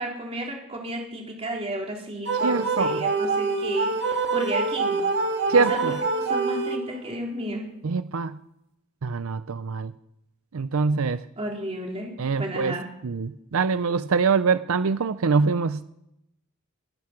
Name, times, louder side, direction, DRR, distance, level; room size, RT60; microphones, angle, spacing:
voice 1, 0.0-5.0 5.5-7.6 11.4-12.8, right 1 dB, 30° right, 0 dB, 3.5 m, -33 dB
sound 1, 2.3-7.1, right 3 dB, 55° right, 1.7 m, -25 dB
voice 2, 2.4-3.1 5.5-6.0 7.8-8.4 9.0-9.9 10.5-11.2 12.2-12.8 13.0-15.9, right 5 dB, 90° right, 14 dB, 0.5 m, -24 dB
23.0 x 9.6 x 5.9 m, 0.83 s
head